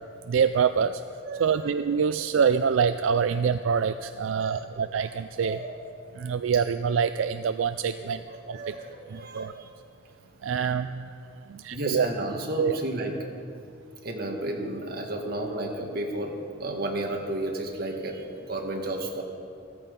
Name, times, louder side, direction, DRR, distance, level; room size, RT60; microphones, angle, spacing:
voice 1, 0.3-1.0 1.4-5.6 6.2-8.2 8.5-8.7 9.1-9.5 10.4-11.2 11.5-12.1 12.6-12.8, right 6 dB, 75° right, 11 dB, 0.4 m, -25 dB
voice 2, 1.2-1.7 2.2-2.3 3.3-3.4 4.3-5.1 5.4-5.7 8.0-9.7 11.7-13.1 14.0-19.2, right 1 dB, 50° right, 1 dB, 1.8 m, -33 dB
14.5 x 14.0 x 5.3 m, 2.5 s
head